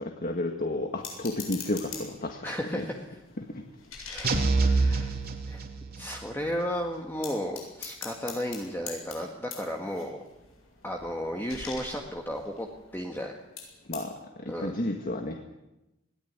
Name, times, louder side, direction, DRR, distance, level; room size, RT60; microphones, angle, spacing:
voice 1, 0.0-2.5 2.7-2.9 3.4-3.6 4.6-5.1 13.9-15.4, left 1 dB, 45° left, 4 dB, 1.8 m, -32 dB
sound 1, 1.0-2.3 2.7-5.6 6.0-6.1 6.4-6.7 7.2-13.2 13.6-14.1, left 5 dB, 90° left, 7.6 m, -44 dB
voice 2, 2.4-3.0 4.1-5.1 5.5-5.6 6.0-10.2 10.8-12.7 12.9-13.4 14.5-14.7, equal, 10° left, 1 dB, 1.8 m, -34 dB
sound 2, 4.2-6.1, right 3 dB, 50° right, 2.7 m, -26 dB
21.5 x 18.0 x 9.7 m, 0.96 s
head